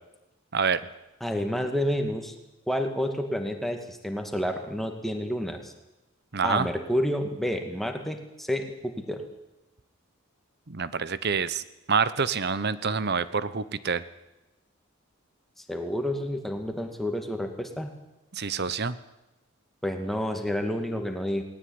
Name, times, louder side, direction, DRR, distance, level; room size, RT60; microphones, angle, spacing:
voice 1, 1.2-2.3 2.7-5.7 6.4-9.2 15.7-17.9 19.8-21.4, equal, ahead, 5 dB, 2.2 m, -29 dB
voice 2, 6.3-6.7 10.7-11.6 11.9-14.0 18.3-19.0, right 5 dB, 50° right, 16 dB, 1.0 m, -27 dB
19.0 x 18.0 x 9.8 m, 0.97 s
head